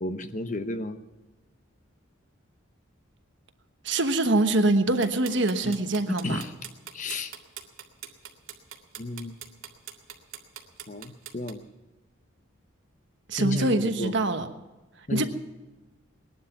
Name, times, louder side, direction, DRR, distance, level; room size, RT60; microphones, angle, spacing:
voice 1, 0.0-1.0 5.6-5.7 6.1-6.5 6.9-7.3 9.0-9.4 10.9-11.6 13.4-14.2 15.1-15.3, left 2 dB, 35° left, 9 dB, 0.9 m, -32 dB
voice 2, 3.8-6.4 13.3-14.5 15.1-15.3, right 2 dB, 60° right, 7 dB, 1.2 m, -24 dB
sound 1, 5.0-11.5, right 9 dB, 80° right, 2.1 m, -42 dB
20.0 x 12.0 x 5.9 m, 1.1 s
head